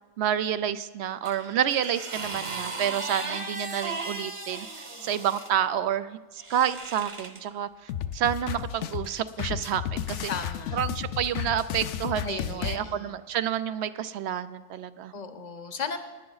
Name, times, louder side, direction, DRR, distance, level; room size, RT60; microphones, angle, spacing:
voice 1, 0.2-10.3 10.7-15.1, right 9 dB, 65° right, 14 dB, 0.8 m, -29 dB
sound 1, 1.2-5.5 6.4-7.4 8.3-8.5, right 3 dB, 30° right, 0.9 m, -36 dB
sound 2, 7.9-12.8, left 10 dB, 75° left, 0.9 m, -33 dB
voice 2, 10.3-10.8 12.2-13.2 15.1-16.0, left 5 dB, 40° left, 9 dB, 0.9 m, -36 dB
17.5 x 10.5 x 3.9 m, 1.2 s
omnidirectional pair, 1.3 m